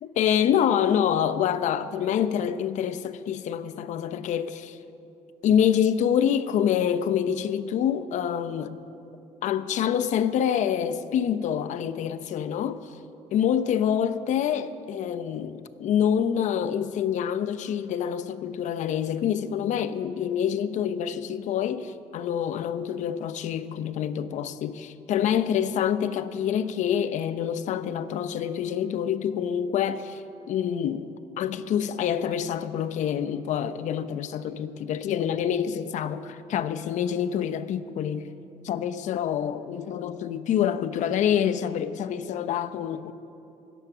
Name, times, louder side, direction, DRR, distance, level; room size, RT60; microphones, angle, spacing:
voice 1, 0.0-4.8 5.4-8.8 9.4-12.8 13.3-38.3 38.6-43.1, left 9 dB, 65° left, 0.7 m, -26 dB
17.0 x 12.5 x 6.1 m
cardioid pair, 110°, 13 cm